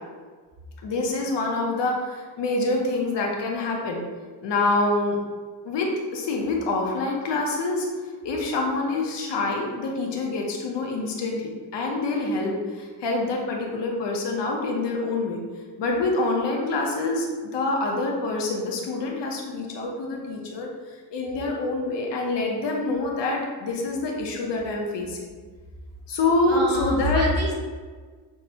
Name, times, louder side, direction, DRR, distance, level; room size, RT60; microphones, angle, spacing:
voice 1, 0.8-4.0 4.4-5.2 5.6-7.9 8.2-15.4 15.8-25.2 26.1-27.3, left 2 dB, 65° left, 0 dB, 0.8 m, -26 dB
voice 2, 26.5-27.5, equal, 35° right, -2 dB, 0.7 m, -25 dB
5.8 x 2.1 x 2.7 m, 1.5 s
wide cardioid pair, 170°, 45 cm